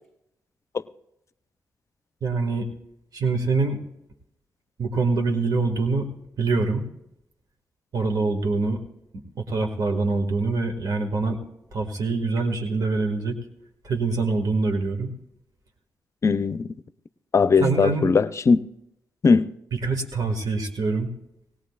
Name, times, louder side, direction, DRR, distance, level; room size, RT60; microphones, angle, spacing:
voice 1, 2.2-2.7 3.1-3.8 4.8-6.9 7.9-8.8 9.1-11.4 11.7-13.4 13.8-15.1 17.6-18.1 19.7-21.1, right 3 dB, 60° right, 3 dB, 2.0 m, -25 dB
voice 2, 16.2-16.7 17.3-18.6 19.2-19.5, left 5 dB, 45° left, 15 dB, 0.5 m, -19 dB
19.0 x 17.5 x 2.4 m, 0.83 s
supercardioid pair, 50°, 7 cm